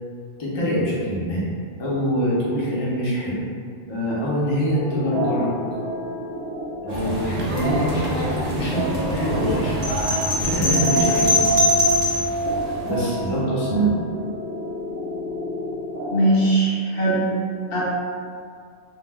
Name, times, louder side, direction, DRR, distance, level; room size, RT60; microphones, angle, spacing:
voice 1, 0.4-1.4 1.8-3.4 3.9-5.5 6.8-9.8 10.3-11.6 12.8-13.9, equal, 40° left, -7 dB, 0.4 m, -24 dB
sound 1, 4.7-16.4, right 1 dB, 80° right, 0.9 m, -28 dB
sound 2, 6.9-13.4, right 1 dB, 60° right, 0.4 m, -29 dB
sound 3, 9.8-12.3, left 2 dB, 10° right, 0.6 m, -22 dB
voice 2, 16.1-17.3 17.7-17.8, right 2 dB, 55° left, -7 dB, 0.9 m, -20 dB
2.2 x 2.1 x 3.3 m, 2.2 s
omnidirectional pair, 1.2 m